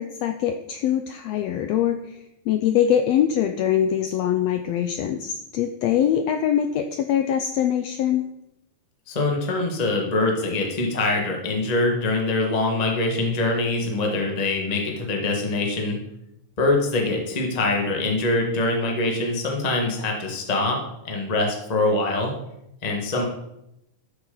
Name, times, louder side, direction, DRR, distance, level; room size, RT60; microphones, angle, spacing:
voice 1, 0.0-8.2, left 10 dB, 80° left, 7 dB, 1.5 m, -23 dB
voice 2, 9.1-16.0 16.6-20.8 21.0-22.3 22.8-23.2, left 2 dB, 30° left, 1 dB, 0.8 m, -24 dB
13.0 x 7.2 x 3.9 m, 0.85 s
omnidirectional pair, 3.4 m